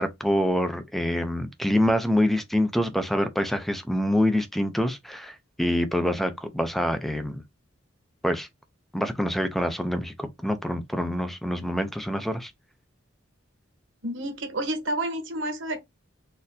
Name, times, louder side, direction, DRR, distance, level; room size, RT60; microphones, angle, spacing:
voice 1, 0.0-5.3 5.6-7.4 8.2-8.5 8.9-12.5, equal, ahead, 0.5 m, -26 dB
voice 2, 14.0-15.8, right 1 dB, 65° right, 1.0 m, -30 dB
4.1 x 2.6 x 2.6 m
head